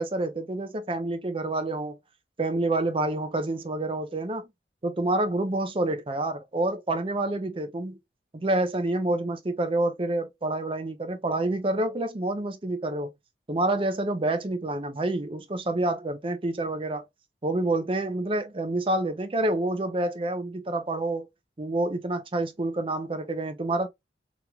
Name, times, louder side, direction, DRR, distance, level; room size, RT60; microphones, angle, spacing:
voice 1, 0.0-2.0 2.4-4.5 4.8-8.0 8.3-13.1 13.5-17.0 17.4-21.3 21.6-23.9, right 2 dB, 30° right, 0.5 m, -28 dB
3.0 x 3.0 x 2.3 m
head